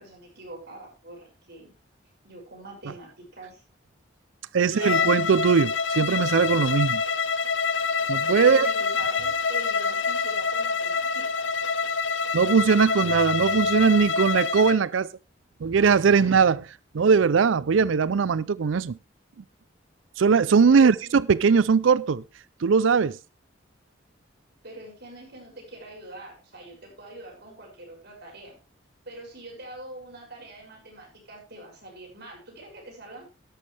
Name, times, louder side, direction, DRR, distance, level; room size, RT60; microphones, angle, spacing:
voice 1, 0.0-1.7 2.2-3.6 4.6-5.2 8.4-11.6 20.7-21.1 24.6-28.6 29.0-33.2, right 1 dB, 60° right, 6.7 m, -43 dB
voice 2, 4.5-7.0 8.1-8.7 12.3-15.1 15.6-16.7 16.9-19.0 20.2-22.2 22.6-23.2, right 5 dB, 85° right, 0.5 m, -20 dB
Bowed string instrument, 4.7-14.8, left 5 dB, 75° left, 0.8 m, -26 dB
12.5 x 11.5 x 3.3 m
head